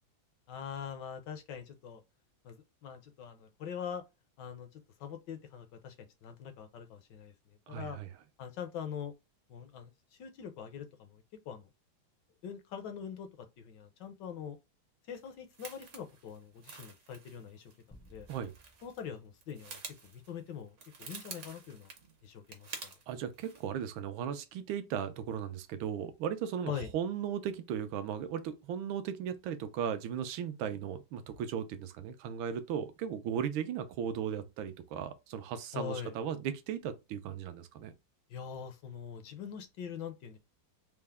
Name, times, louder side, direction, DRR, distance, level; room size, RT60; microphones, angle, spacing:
voice 1, 0.5-2.0 2.4-4.0 4.4-5.9 6.2-7.3 7.7-8.0 8.4-9.1 9.5-9.9 10.2-11.7 12.4-14.6 15.1-17.7 18.1-18.3 18.8-19.8 20.1-21.9 22.2-22.9 26.7-26.9 35.7-36.1 38.3-40.4, left 8 dB, 70° left, 1.2 m, -43 dB
voice 2, 7.7-8.1 18.3-18.5 23.1-37.9, right 8 dB, 80° right, 1.4 m, -36 dB
sound 1, 15.2-19.1 19.3-23.0 23.3-23.7, right 5 dB, 55° right, 0.8 m, -49 dB
sound 2, 17.9-20.4, equal, 25° left, 0.4 m, -60 dB
4.4 x 2.0 x 3.4 m
omnidirectional pair, 2.2 m